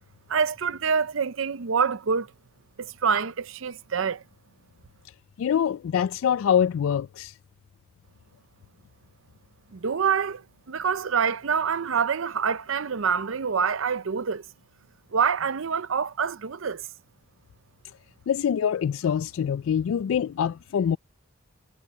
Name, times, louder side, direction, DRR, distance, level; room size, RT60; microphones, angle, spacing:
voice 1, 0.3-2.3 2.8-4.2 9.7-10.4 10.7-14.4 15.1-16.8, right 6 dB, 85° right, 0.6 m, -26 dB
voice 2, 5.4-7.3 18.3-21.0, left 8 dB, 85° left, 0.3 m, -24 dB
head